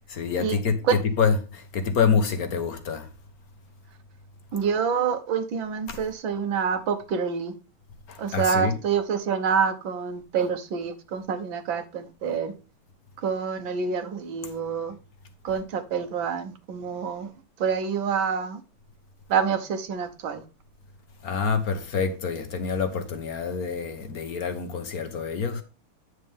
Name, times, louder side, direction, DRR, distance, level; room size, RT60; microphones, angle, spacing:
voice 1, 0.1-0.8 1.2-3.1 5.9-6.0 8.1-8.7 21.2-25.6, left 5 dB, 50° left, 1.4 m, -26 dB
voice 2, 4.5-7.5 8.2-12.5 13.2-15.0 15.4-17.3 17.6-18.6 19.3-20.4, right 6 dB, 65° right, 1.7 m, -27 dB
9.3 x 6.6 x 3.5 m
omnidirectional pair, 2.4 m